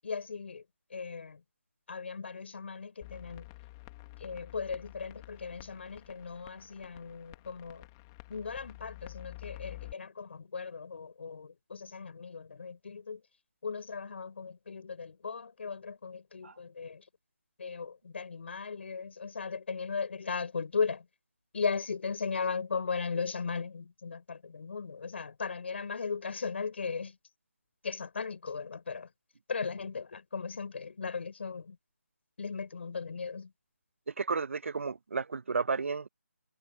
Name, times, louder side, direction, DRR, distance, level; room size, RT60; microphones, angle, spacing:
voice 1, 0.0-0.6 0.9-1.4 1.9-3.5 4.2-7.9 8.3-13.2 13.6-17.0 17.6-21.1 21.5-27.2 27.8-29.1 29.5-31.8 32.4-33.5, left 5 dB, 50° left, 5.6 m, -37 dB
sound 1, 3.0-9.9, left 20 dB, 15° left, 1.9 m, -49 dB
voice 2, 34.1-36.1, right 4 dB, 60° right, 0.9 m, -32 dB
figure-of-eight pair, 170°, 8 cm